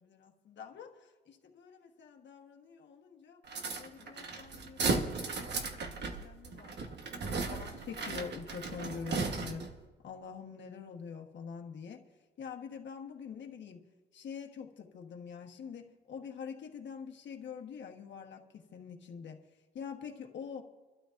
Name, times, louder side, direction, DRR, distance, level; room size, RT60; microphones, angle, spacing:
voice 1, 0.0-3.4 3.8-9.6 10.0-12.0 12.4-13.8 14.1-19.4 19.7-20.6, left 6 dB, 75° left, 2 dB, 1.3 m, -45 dB
sound 1, 3.5-9.8, right 4 dB, 65° right, 1.3 m, -36 dB
27.0 x 12.5 x 2.6 m, 1.3 s
wide cardioid pair, 130°, 19 cm